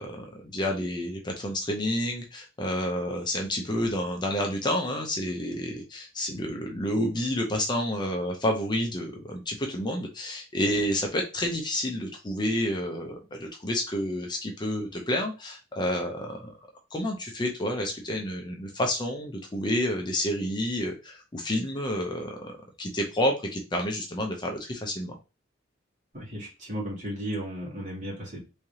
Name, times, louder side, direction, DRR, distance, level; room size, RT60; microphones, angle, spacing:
voice 1, 0.0-16.5 16.9-25.1, left 1 dB, 25° left, 2 dB, 0.6 m, -29 dB
voice 2, 26.1-28.4, equal, 40° right, -4 dB, 2.2 m, -35 dB
3.6 x 3.2 x 2.8 m, 0.29 s
head